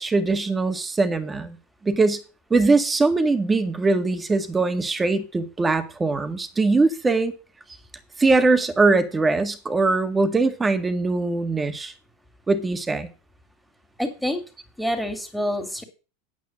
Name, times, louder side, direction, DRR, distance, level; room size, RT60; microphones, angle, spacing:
voice 1, 0.0-1.6 1.8-2.2 2.5-7.3 8.2-11.9 12.5-13.1, right 3 dB, 15° right, 1.8 m, -21 dB
voice 2, 14.0-14.4 14.8-15.8, equal, ahead, 3.1 m, -27 dB
9.5 x 8.2 x 6.3 m
supercardioid pair, 120°, 0 cm